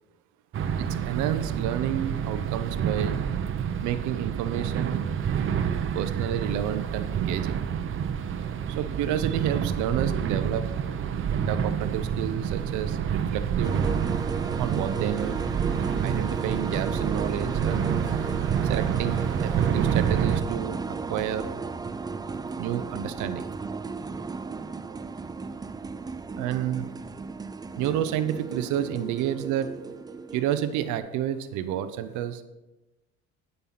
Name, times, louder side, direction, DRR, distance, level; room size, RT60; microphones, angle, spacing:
sound 1, 0.5-20.4, right 8 dB, 45° right, 0.9 m, -28 dB
voice 1, 0.8-3.2 3.8-5.0 5.9-7.6 8.7-10.7 11.3-13.8 14.6-15.4 16.0-18.0 18.6-20.8 21.1-21.5 22.6-23.5 26.4-26.9 27.8-29.7 30.3-32.4, right 10 dB, 80° right, 10 dB, 0.8 m, -30 dB
sound 2, 13.6-31.0, right 4 dB, 15° right, 0.4 m, -34 dB
12.5 x 5.5 x 5.9 m, 1.0 s
cardioid pair, 125°, 29 cm